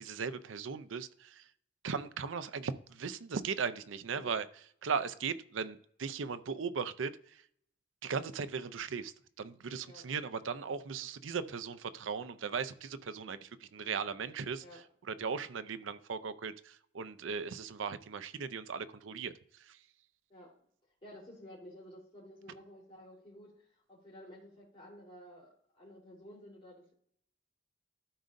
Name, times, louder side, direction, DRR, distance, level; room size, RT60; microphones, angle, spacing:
voice 1, 0.0-1.4 1.8-4.5 4.8-7.4 8.0-14.6 15.1-19.3 19.6-19.8, right 5 dB, 85° right, 0.5 m, -38 dB
voice 2, 4.1-4.4 9.8-10.1 14.6-14.8 20.3-20.5 21.0-26.9, equal, 30° left, 3.7 m, -53 dB
13.0 x 5.1 x 2.6 m
head